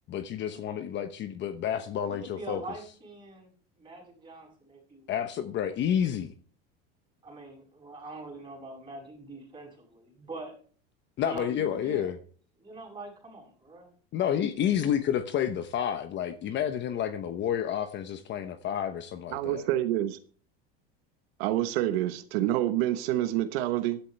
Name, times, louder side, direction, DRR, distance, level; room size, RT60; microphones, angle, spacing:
voice 1, 0.1-2.6 5.1-6.3 11.2-12.2 14.1-19.6, left 9 dB, 35° left, 1.0 m, -30 dB
voice 2, 2.1-3.5 3.8-5.2 7.2-10.6 11.2-12.1 12.6-13.9, right 2 dB, 15° right, 6.9 m, -43 dB
voice 3, 19.3-20.2 21.4-24.0, right 13 dB, 80° right, 1.2 m, -27 dB
14.5 x 11.5 x 3.4 m
supercardioid pair, 140°, 30 cm